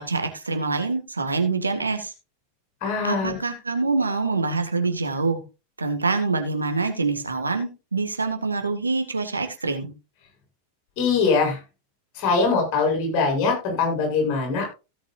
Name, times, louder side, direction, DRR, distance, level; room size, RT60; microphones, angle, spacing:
voice 1, 0.0-2.1 3.0-5.4 5.8-9.9, right 3 dB, 80° right, 6 dB, 2.0 m, -25 dB
voice 2, 2.8-3.3 11.0-11.6 12.1-14.7, left 4 dB, 40° left, 1 dB, 7.3 m, -22 dB
16.5 x 8.2 x 2.6 m, 0.29 s
figure-of-eight pair, 90°, 0 cm